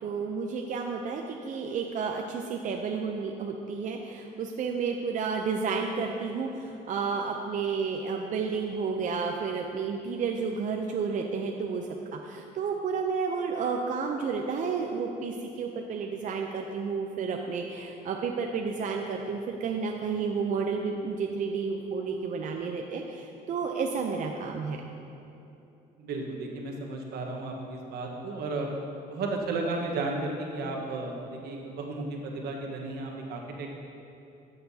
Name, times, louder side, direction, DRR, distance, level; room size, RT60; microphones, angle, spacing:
voice 1, 0.0-24.8, right 5 dB, 50° right, 2 dB, 0.5 m, -31 dB
voice 2, 26.0-28.7 29.0-33.8, right 3 dB, 75° right, 0 dB, 1.2 m, -34 dB
13.5 x 6.7 x 2.8 m, 2.9 s
cardioid pair, 110°, 17 cm